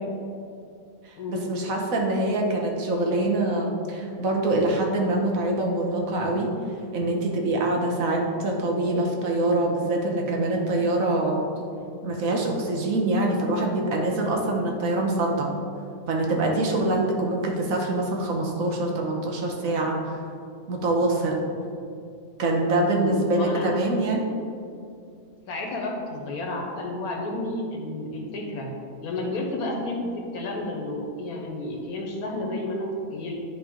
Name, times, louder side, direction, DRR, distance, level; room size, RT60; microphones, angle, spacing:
voice 1, 1.0-6.5 6.9-11.4 12.0-15.5 16.1-20.2 20.7-21.4 22.4-24.3, right 2 dB, 70° right, 0 dB, 1.4 m, -24 dB
voice 2, 22.8-23.7 25.5-28.7 29.0-30.0 30.3-33.3, left 2 dB, 85° left, -1 dB, 1.6 m, -31 dB
10.5 x 3.9 x 3.7 m, 2.4 s
omnidirectional pair, 1.5 m